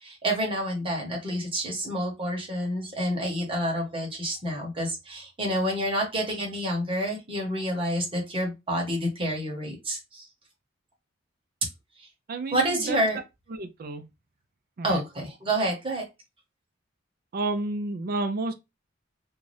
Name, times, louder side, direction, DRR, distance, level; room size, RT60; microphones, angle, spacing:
voice 1, 0.0-10.2 12.5-13.2 14.8-16.0, right 1 dB, 25° right, 1.1 m, -28 dB
voice 2, 12.3-13.0 13.5-14.0 14.8-15.0 17.3-18.5, right 2 dB, 45° right, 0.5 m, -31 dB
2.6 x 2.4 x 3.2 m
head